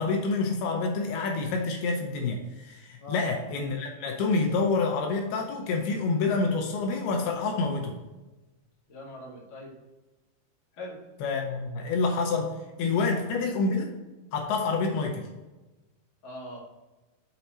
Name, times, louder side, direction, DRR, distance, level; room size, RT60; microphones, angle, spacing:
voice 1, 0.0-8.0 11.2-12.5 12.8-13.9 14.3-15.3, left 3 dB, 80° left, 2 dB, 2.7 m, -27 dB
voice 2, 8.9-9.7 10.7-11.0 13.1-13.2 16.2-16.6, left 1 dB, 40° left, -5 dB, 2.0 m, -41 dB
7.2 x 4.1 x 4.4 m, 1.1 s
omnidirectional pair, 4.6 m